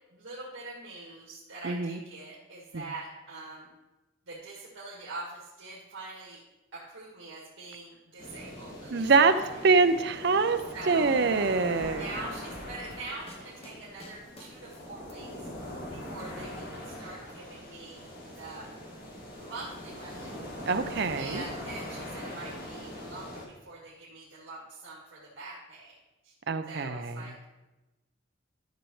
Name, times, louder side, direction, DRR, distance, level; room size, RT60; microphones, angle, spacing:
voice 1, 0.1-3.7 4.3-6.4 6.7-9.4 10.7-11.1 11.9-15.5 15.9-18.1 18.4-18.7 19.4-20.4 21.1-26.0 26.2-26.3 26.7-27.5, right 2 dB, 85° right, -6 dB, 1.8 m, -44 dB
voice 2, 1.6-2.0 2.7-2.9 8.9-9.3 9.6-12.0 20.7-21.4 26.5-27.2, right 4 dB, 60° right, 10 dB, 0.5 m, -24 dB
sound 1, 8.2-23.4, equal, 50° left, 1.8 m, -42 dB
sound 2, 11.8-15.1 15.5-17.0 17.3-18.2, left 1 dB, 30° left, 0.9 m, -51 dB
12.0 x 6.4 x 3.2 m, 1.1 s
head